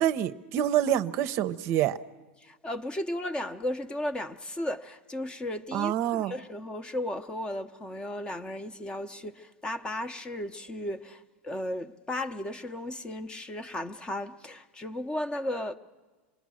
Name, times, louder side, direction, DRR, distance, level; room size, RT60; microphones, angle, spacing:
voice 1, 0.0-2.0 5.7-6.3, right 11 dB, 45° right, 0.7 m, -26 dB
voice 2, 2.4-15.8, left 1 dB, 15° left, 0.7 m, -35 dB
27.0 x 19.5 x 6.3 m
supercardioid pair, 145°, 6 cm